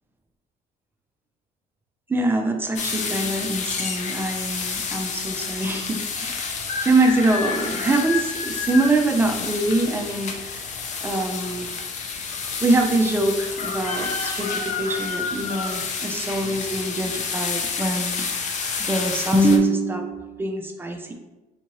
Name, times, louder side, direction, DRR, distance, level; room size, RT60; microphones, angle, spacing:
voice 1, 2.1-10.7 11.0-11.7 12.6-21.1, right 2 dB, 15° right, 4 dB, 0.4 m, -24 dB
sound 1, 2.8-19.6, left 5 dB, 45° left, 0.5 m, -29 dB
3.5 x 2.7 x 2.9 m, 1.1 s
cardioid pair, 110°, 17 cm